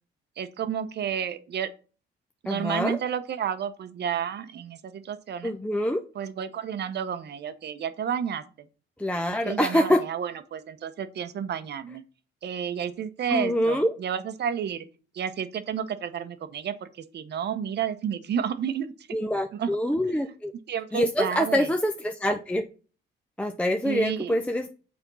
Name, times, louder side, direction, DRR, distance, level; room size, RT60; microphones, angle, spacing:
voice 1, 0.4-1.7 2.4-5.5 6.1-8.4 9.4-12.0 12.4-14.8 15.1-19.1 19.5-19.7 20.7-21.7 23.8-24.3, right 8 dB, 60° right, 11 dB, 0.8 m, -31 dB
voice 2, 2.5-3.0 5.4-6.0 9.0-10.0 13.3-13.9 19.1-20.5 20.9-22.7 23.4-24.7, left 1 dB, 5° left, 6 dB, 0.5 m, -25 dB
6.1 x 4.4 x 5.3 m, 0.37 s
cardioid pair, 90°, 20 cm